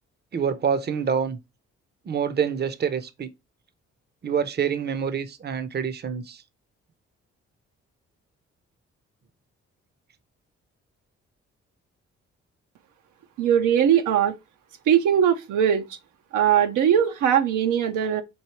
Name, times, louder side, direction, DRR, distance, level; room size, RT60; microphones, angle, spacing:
voice 1, 0.3-1.4 2.1-3.3 4.2-6.4, right 7 dB, 35° right, 0.6 m, -26 dB
voice 2, 13.4-14.3 14.9-15.9 16.3-18.2, right 9 dB, 75° right, 0.6 m, -20 dB
4.6 x 2.7 x 3.0 m
supercardioid pair, 50°, 31 cm